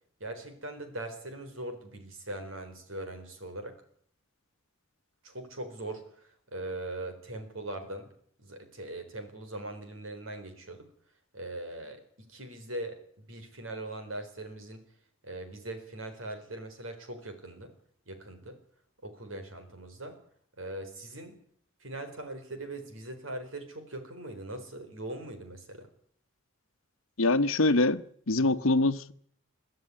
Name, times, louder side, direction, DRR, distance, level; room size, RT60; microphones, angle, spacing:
voice 1, 0.2-3.8 5.2-8.1 8.4-10.9 11.3-14.9 15.2-17.8 18.1-18.6 19.0-20.2 20.6-21.4 21.8-25.9, right 1 dB, 80° right, 4.1 m, -41 dB
voice 2, 27.2-29.1, left 2 dB, 85° left, 1.0 m, -24 dB
23.0 x 13.5 x 9.7 m
head